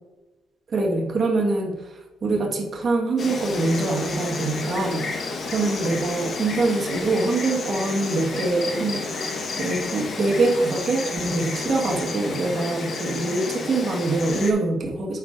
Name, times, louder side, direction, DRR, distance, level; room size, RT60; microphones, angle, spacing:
voice 1, 0.7-9.3 9.6-15.2, right 2 dB, 45° right, 0 dB, 1.5 m, -24 dB
Insect, 3.2-14.5, left 3 dB, 50° left, 1.1 m, -31 dB
7.2 x 5.4 x 3.7 m, 1.0 s
cardioid pair, 90°, 0 cm